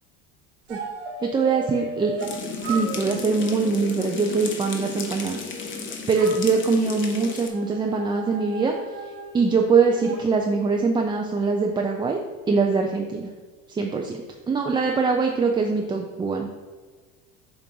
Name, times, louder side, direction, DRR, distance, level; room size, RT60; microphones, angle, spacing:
sound 1, 0.7-2.3 2.6-5.7 6.1-10.2, right 2 dB, 80° right, 1.5 m, -37 dB
voice 1, 1.2-2.1 2.6-5.4 5.7-8.7 9.0-12.2 12.5-13.3 13.7-14.2 14.5-16.5, right 4 dB, 15° right, 1 dB, 0.4 m, -23 dB
sound 2, 2.2-7.5, left 4 dB, 35° left, 1.1 m, -34 dB
7.4 x 2.5 x 5.2 m, 1.5 s
supercardioid pair, 115°, 35 cm